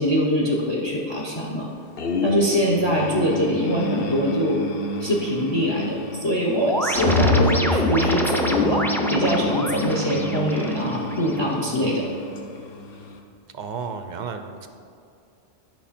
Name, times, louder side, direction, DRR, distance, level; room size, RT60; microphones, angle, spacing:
voice 1, 0.0-1.7 2.2-4.6 5.0-8.8 9.1-12.1, equal, 25° left, -2 dB, 0.8 m, -23 dB
sound 1, 2.0-13.2, left 1 dB, 60° left, 0.9 m, -30 dB
sound 2, 6.6-11.6, equal, 5° left, 0.3 m, -26 dB
sound 3, 6.9-9.2, left 2 dB, 80° left, 2.0 m, -23 dB
voice 2, 13.5-14.7, right 5 dB, 55° right, 7 dB, 0.6 m, -32 dB
10.5 x 6.1 x 4.3 m, 2.4 s
omnidirectional pair, 1.2 m